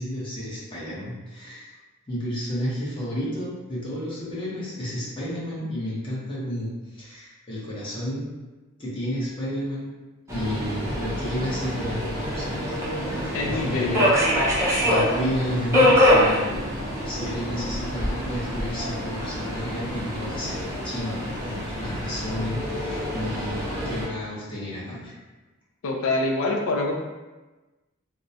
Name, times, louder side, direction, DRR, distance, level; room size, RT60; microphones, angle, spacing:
voice 1, 0.0-1.7 2.1-8.3 8.8-9.9 10.3-12.7 13.0-14.2 14.8-25.1, equal, 25° left, -7 dB, 0.7 m, -31 dB
Subway metro underground, 10.3-24.1, equal, 15° right, 0.5 m, -25 dB
voice 2, 13.3-14.1 25.8-26.9, left 2 dB, 65° left, 1 dB, 0.4 m, -25 dB
2.4 x 2.0 x 2.6 m, 1.2 s
head